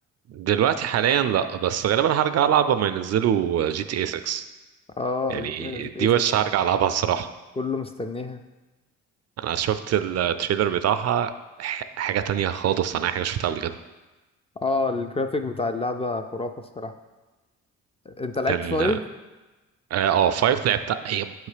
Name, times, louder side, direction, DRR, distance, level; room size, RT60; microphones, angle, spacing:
voice 1, 0.3-4.4 5.3-7.3 9.4-11.3 11.6-13.7 18.5-18.9 19.9-21.5, right 9 dB, 55° right, 11 dB, 0.4 m, -23 dB
voice 2, 5.0-6.1 7.6-8.4 14.6-16.9 18.1-19.0, left 3 dB, 20° left, 7 dB, 0.3 m, -28 dB
7.5 x 3.2 x 4.9 m, 1.2 s
cardioid pair, 90°, 30 cm